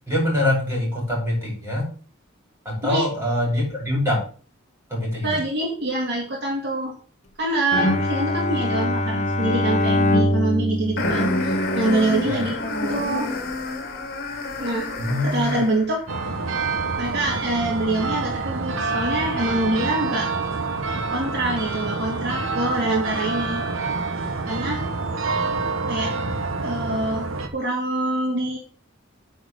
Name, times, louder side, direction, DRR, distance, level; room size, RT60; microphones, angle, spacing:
voice 1, 0.1-1.9 2.7-4.2 4.9-5.4 12.2-12.5 15.0-15.6, left 1 dB, 10° right, -2 dB, 5.4 m, -24 dB
voice 2, 5.2-7.0 7.4-12.5 12.8-13.3 14.6-14.9 15.2-16.0 17.0-20.3 21.1-23.6 24.5-24.8 25.9-26.1 26.6-28.6, right 1 dB, 55° right, -2 dB, 2.2 m, -25 dB
Bowed string instrument, 7.7-12.1, left 1 dB, 35° left, 1.1 m, -23 dB
sound 1, 11.0-15.9, left 2 dB, 50° left, 1.9 m, -27 dB
sound 2, 16.1-27.5, right 3 dB, 70° right, 1.2 m, -27 dB
9.3 x 4.5 x 6.5 m, 0.41 s
head